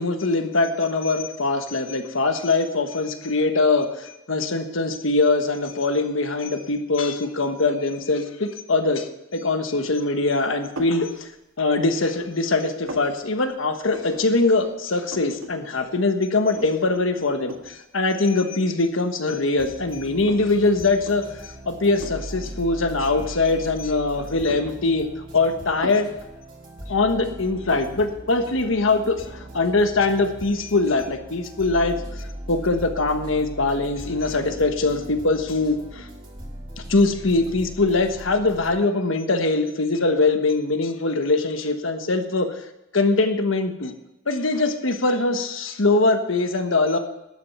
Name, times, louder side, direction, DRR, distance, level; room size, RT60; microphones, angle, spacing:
voice 1, 0.0-11.3 11.6-25.1 25.3-26.2 26.9-36.1 36.9-42.5 42.9-43.9 44.3-47.0, left 3 dB, 70° left, 7 dB, 1.3 m, -22 dB
sound 1, 10.8-11.1 11.6-12.3 12.5-13.1 13.9-14.3 14.6-14.7 14.9-15.5 15.9-16.0 16.5-17.0 17.5-17.8 18.6-18.7 19.2-20.5 20.9-21.2 22.0-22.3 23.3-23.9 24.3-25.3 25.8-26.1, right 1 dB, 75° right, 1.7 m, -37 dB
sound 2, 19.6-38.8, right 1 dB, 25° right, 2.9 m, -39 dB
12.0 x 9.0 x 5.6 m, 0.91 s
head